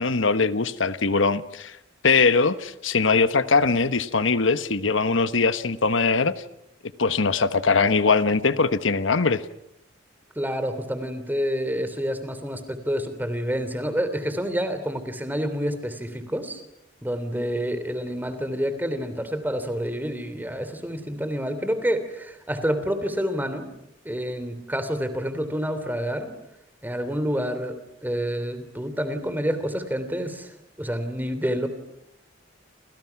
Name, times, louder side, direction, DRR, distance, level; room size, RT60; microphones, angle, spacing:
voice 1, 0.0-1.8 2.0-6.3 7.0-9.4, left 4 dB, 90° left, 12 dB, 1.2 m, -21 dB
voice 2, 10.3-16.6 17.0-23.7 24.0-26.3 26.8-31.7, equal, 10° right, 10 dB, 3.2 m, -28 dB
29.5 x 27.5 x 5.9 m, 0.77 s
head